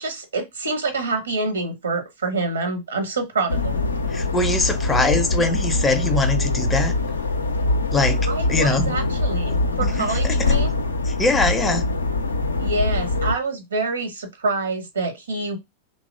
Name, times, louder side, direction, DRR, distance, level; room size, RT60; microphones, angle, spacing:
voice 1, 0.0-3.8 8.3-10.7 12.6-15.6, right 3 dB, 70° right, 0.7 m, -26 dB
sound 1, 3.5-13.3, left 2 dB, 75° left, 0.4 m, -23 dB
voice 2, 4.1-7.0 7.9-9.0 9.8-10.6 11.0-11.9, left 2 dB, 15° left, 0.5 m, -22 dB
2.8 x 2.2 x 2.4 m
figure-of-eight pair, 90°, 0 cm